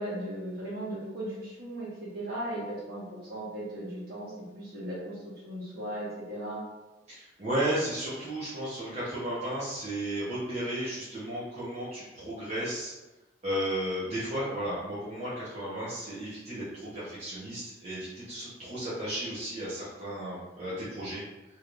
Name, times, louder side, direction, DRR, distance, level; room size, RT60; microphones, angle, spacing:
voice 1, 0.0-5.2 5.5-6.6, right 1 dB, 55° right, -7 dB, 1.4 m, -37 dB
voice 2, 7.1-12.9 13.4-21.2, right 1 dB, 35° right, -11 dB, 0.9 m, -34 dB
3.3 x 3.0 x 2.5 m, 1.1 s
head